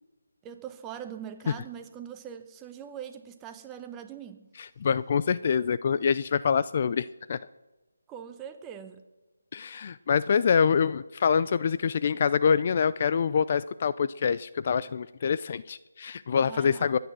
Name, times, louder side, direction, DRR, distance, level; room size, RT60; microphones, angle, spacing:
voice 1, 0.4-4.5 8.1-9.0 16.4-16.9, right 9 dB, 10° right, 8 dB, 1.0 m, -42 dB
voice 2, 4.8-7.4 9.5-17.0, left 6 dB, 40° left, 15 dB, 0.4 m, -25 dB
23.0 x 9.5 x 6.1 m, 1.1 s
figure-of-eight pair, 160°, 0 cm